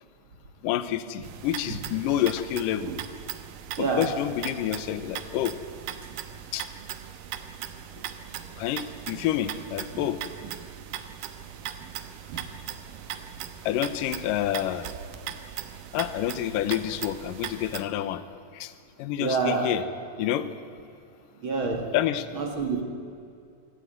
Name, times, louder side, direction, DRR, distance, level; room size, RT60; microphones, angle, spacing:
voice 1, 0.6-2.9 3.8-5.6 6.5-6.7 8.6-10.2 13.7-14.9 15.9-18.2 18.5-18.7 19.0-19.8 20.2-20.5 21.9-22.3, left 12 dB, 70° left, 12 dB, 2.4 m, -28 dB
sound 1, 1.2-17.8, right 9 dB, 70° right, 2.4 m, -39 dB
voice 2, 3.8-4.1 19.2-19.8 21.4-21.9 22.3-22.8, right 4 dB, 45° right, 3 dB, 1.9 m, -27 dB
24.5 x 16.5 x 9.2 m, 2.5 s
omnidirectional pair, 4.5 m